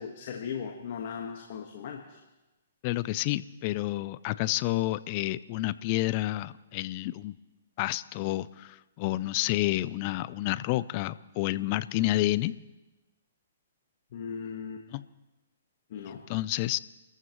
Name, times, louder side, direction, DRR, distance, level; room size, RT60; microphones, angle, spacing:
voice 1, 0.0-2.2 14.1-14.8 15.9-16.2, left 7 dB, 55° left, 2 dB, 1.5 m, -38 dB
voice 2, 2.8-7.4 7.8-12.6 14.9-15.0 16.1-16.8, left 17 dB, 35° left, 17 dB, 0.5 m, -29 dB
28.0 x 14.0 x 3.2 m, 1.1 s
hypercardioid pair, 145°, 0 cm